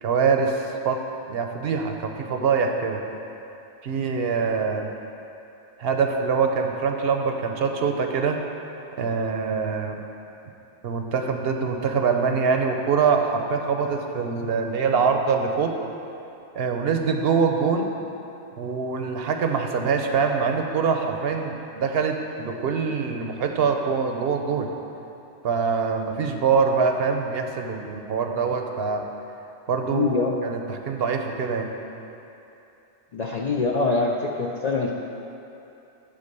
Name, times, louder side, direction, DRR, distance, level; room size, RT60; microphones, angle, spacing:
voice 1, 0.0-1.0 1.3-3.0 3.8-4.9 5.8-8.4 9.0-10.0 10.8-15.7 16.6-17.9 18.6-24.7 25.4-29.0 29.7-31.7, right 5 dB, 60° right, 4 dB, 0.8 m, -24 dB
voice 2, 29.9-30.4 33.1-35.0, left 3 dB, 50° left, 0 dB, 0.5 m, -24 dB
11.0 x 3.9 x 6.6 m, 2.8 s
omnidirectional pair, 1.2 m